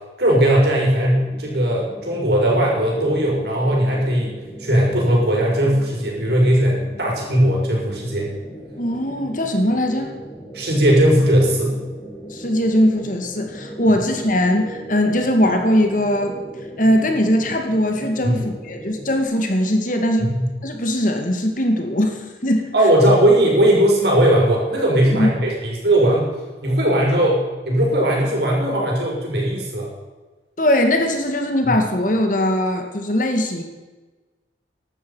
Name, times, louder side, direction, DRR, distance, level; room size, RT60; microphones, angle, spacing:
voice 1, 0.2-4.3 4.6-8.3 10.5-11.8 18.2-18.4 20.2-20.5 22.7-26.3 26.6-29.9 31.6-31.7, right 1 dB, 65° right, -2 dB, 5.6 m, -18 dB
sound 1, 1.1-19.2, right 1 dB, 15° left, 1.8 m, -38 dB
voice 2, 8.8-10.2 12.3-16.4 16.8-20.3 20.6-22.7 25.1-25.3 30.6-33.6, left 1 dB, 45° left, 4 dB, 2.1 m, -20 dB
16.0 x 12.0 x 5.7 m, 1.2 s
head